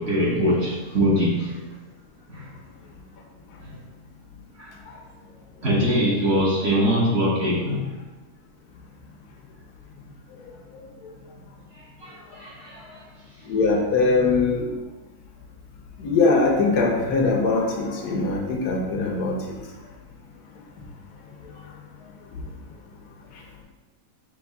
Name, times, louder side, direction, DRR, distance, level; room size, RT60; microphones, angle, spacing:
voice 1, 0.0-1.6 2.3-2.5 3.6-3.7 4.6-4.7 5.6-7.9 12.0-13.0, equal, 50° right, -5 dB, 1.0 m, -23 dB
voice 2, 13.5-14.7 16.0-19.4, left 3 dB, 80° left, 0 dB, 1.3 m, -21 dB
6.2 x 3.0 x 2.3 m, 1.2 s
omnidirectional pair, 1.7 m